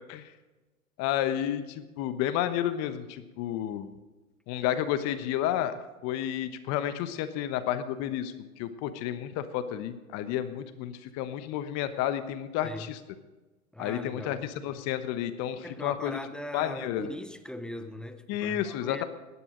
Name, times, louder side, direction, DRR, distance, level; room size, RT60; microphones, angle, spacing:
voice 1, 1.0-3.9 4.5-5.7 6.0-13.0 13.8-16.2 16.5-17.1 18.3-19.0, left 11 dB, 35° left, 11 dB, 1.1 m, -31 dB
voice 2, 13.7-14.4 15.6-19.0, left 1 dB, ahead, 8 dB, 0.6 m, -40 dB
16.5 x 11.5 x 5.1 m, 1.2 s
hypercardioid pair, 120°, 44 cm